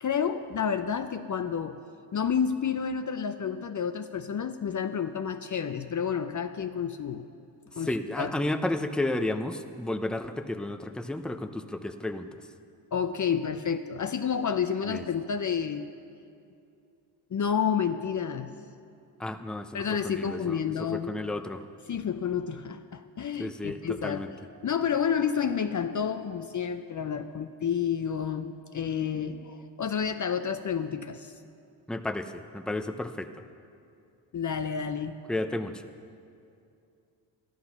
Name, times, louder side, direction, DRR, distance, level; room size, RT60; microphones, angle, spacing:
voice 1, 0.0-1.8 2.1-7.3 7.8-8.3 12.9-15.9 17.3-18.5 19.7-21.1 21.9-24.3 24.6-31.3 34.3-35.2, left 7 dB, 40° left, 9 dB, 0.7 m, -30 dB
voice 2, 7.8-12.3 14.9-15.0 19.2-21.6 23.4-24.3 31.9-33.3 35.3-35.8, left 1 dB, ahead, 7 dB, 0.8 m, -32 dB
13.0 x 12.0 x 5.9 m, 2.5 s
supercardioid pair, 55°, 48 cm